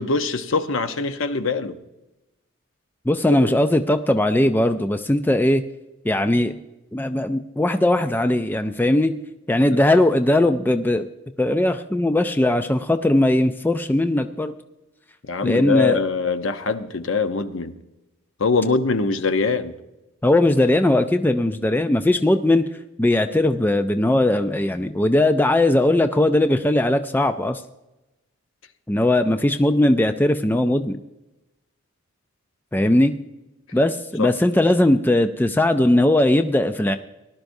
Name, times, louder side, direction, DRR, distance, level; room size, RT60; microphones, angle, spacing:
voice 1, 0.0-1.8 3.4-3.5 9.7-9.8 15.3-17.7 18.4-19.7 34.2-34.3, left 4 dB, 70° left, 9 dB, 0.8 m, -23 dB
voice 2, 3.1-5.6 6.0-6.6 6.9-9.2 9.5-11.1 11.4-14.5 15.4-16.0 20.2-22.7 23.0-27.6 28.9-31.0 32.7-33.2 33.7-37.0, left 1 dB, 10° left, 8 dB, 0.3 m, -19 dB
18.5 x 11.5 x 2.7 m, 0.98 s
head